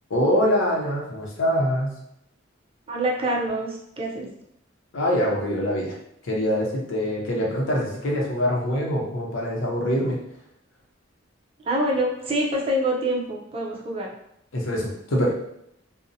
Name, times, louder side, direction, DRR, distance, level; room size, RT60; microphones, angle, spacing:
voice 1, 0.1-2.0 4.9-5.9 6.2-10.2 14.5-15.3, equal, 80° left, -2 dB, 0.6 m, -24 dB
voice 2, 2.9-4.3 11.6-14.1, right 1 dB, 30° right, -2 dB, 0.5 m, -26 dB
2.6 x 2.0 x 2.6 m, 0.77 s
head